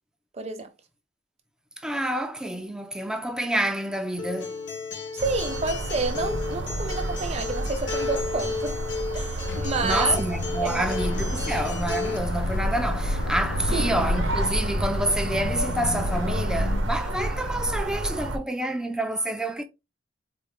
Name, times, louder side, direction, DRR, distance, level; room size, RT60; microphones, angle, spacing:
voice 1, 0.3-0.7 5.1-8.8 9.1-10.3 10.6-11.0 13.7-14.0, right 3 dB, 35° right, 0.7 m, -30 dB
voice 2, 1.8-4.6 9.8-19.6, right 1 dB, 5° right, 0.4 m, -28 dB
Acoustic guitar, 4.2-12.2, left 4 dB, 70° left, 0.9 m, -33 dB
sound 1, 5.2-18.4, right 1 dB, 90° right, 0.7 m, -30 dB
sound 2, 9.5-16.8, left 2 dB, 90° left, 0.4 m, -31 dB
4.1 x 2.1 x 3.3 m
head